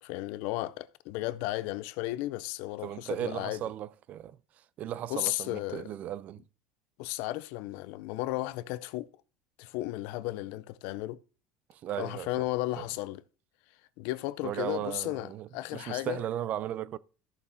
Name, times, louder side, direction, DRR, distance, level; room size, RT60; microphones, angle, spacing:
voice 1, 0.0-3.6 5.1-5.9 7.0-9.1 9.6-11.2 12.0-13.2 14.0-16.2, left 17 dB, 70° left, 0.5 m, -34 dB
voice 2, 2.8-4.4 4.8-6.4 11.7-12.5 12.8-12.9 14.4-17.0, right 11 dB, 50° right, 0.4 m, -36 dB
14.0 x 7.0 x 2.6 m
supercardioid pair, 110°, 3 cm